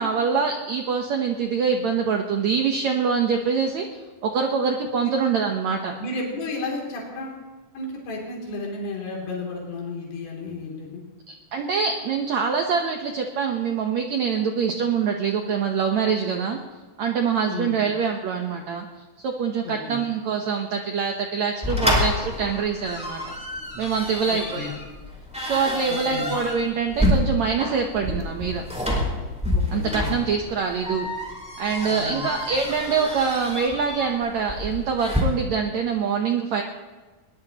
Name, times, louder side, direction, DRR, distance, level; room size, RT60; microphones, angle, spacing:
voice 1, 0.0-3.9 4.2-6.0 11.5-16.6 17.0-18.9 19.2-23.2 23.8-24.8 25.4-28.6 29.7-31.1 31.6-36.6, right 6 dB, 75° right, 3 dB, 1.6 m, -24 dB
voice 2, 6.0-7.4 7.7-11.0 17.5-17.8 19.6-20.0 24.3-24.7 25.9-26.3 29.5-30.3 31.8-32.3, left 3 dB, 85° left, -2 dB, 5.2 m, -33 dB
sound 1, 21.6-35.2, left 1 dB, ahead, 4.4 m, -28 dB
22.0 x 19.5 x 3.0 m, 1.3 s
omnidirectional pair, 4.7 m